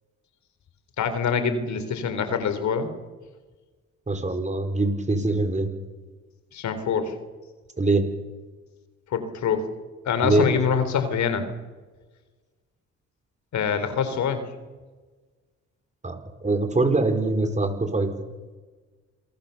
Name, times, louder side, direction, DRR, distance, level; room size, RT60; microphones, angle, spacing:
voice 1, 1.0-2.9 6.5-7.2 9.1-9.7 10.1-11.5 13.5-14.4, left 6 dB, 70° left, 10 dB, 3.9 m, -25 dB
voice 2, 4.1-5.7 7.8-8.0 10.2-10.5 16.0-18.1, right 2 dB, 25° right, 6 dB, 4.6 m, -23 dB
27.5 x 21.5 x 7.1 m, 1.3 s
cardioid pair, 90°, 30 cm